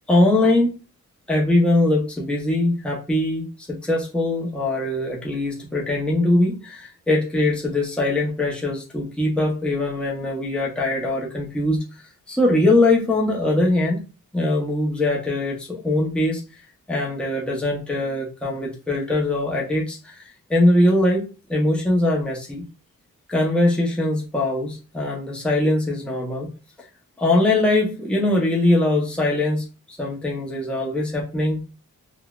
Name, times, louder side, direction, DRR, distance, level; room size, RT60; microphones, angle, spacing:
voice 1, 0.1-0.8 1.3-11.8 12.3-14.0 14.3-16.4 16.9-22.7 23.3-26.5 27.2-31.6, left 2 dB, 5° left, -3 dB, 0.8 m, -21 dB
3.8 x 2.2 x 2.3 m, 0.32 s
wide cardioid pair, 100°, 32 cm